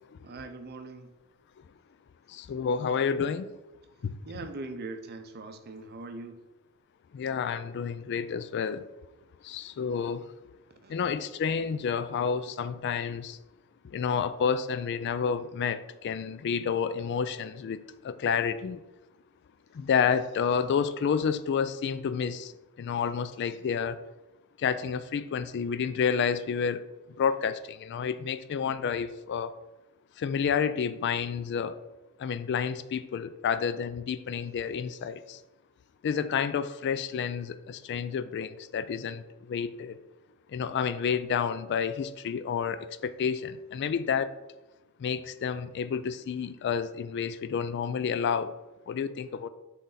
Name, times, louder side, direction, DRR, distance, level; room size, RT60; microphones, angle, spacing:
voice 1, 0.2-1.1 4.2-6.4 10.8-10.9, right 3 dB, 45° right, 7 dB, 0.6 m, -41 dB
voice 2, 2.3-3.5 4.0-4.2 7.1-8.8 9.4-10.2 10.9-13.4 13.8-18.8 19.7-22.5 22.8-24.0 24.6-26.8 27.2-29.5 30.2-31.8 32.2-35.4 36.0-40.0 40.5-44.3 45.0-48.5 48.9-49.5, left 6 dB, 50° left, 13 dB, 0.3 m, -30 dB
6.2 x 3.9 x 3.9 m, 1.0 s
head